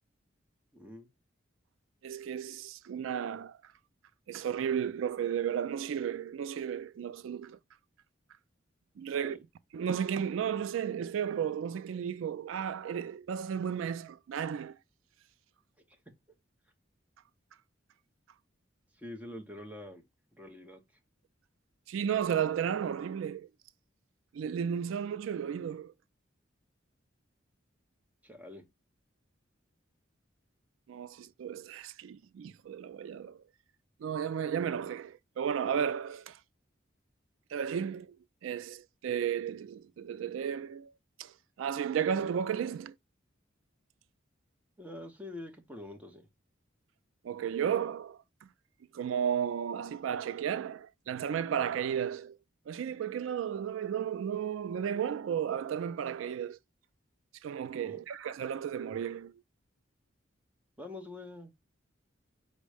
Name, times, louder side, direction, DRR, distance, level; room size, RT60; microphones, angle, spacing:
voice 1, 0.7-1.1 9.1-9.4 19.0-20.0 20.3-20.8 28.2-28.6 44.8-46.3 57.8-58.0 60.8-61.5, left 1 dB, 5° right, 0.7 m, -45 dB
voice 2, 2.0-3.6 4.3-7.6 9.0-9.4 9.7-14.7 21.9-23.5 24.3-25.9 30.9-33.4 34.0-36.4 37.5-38.2 38.4-40.9 41.2-41.3 41.6-42.9 47.2-48.5 48.9-52.4 52.7-56.6 57.4-59.4, right 8 dB, 85° right, 0.3 m, -33 dB
5.3 x 2.1 x 4.8 m
head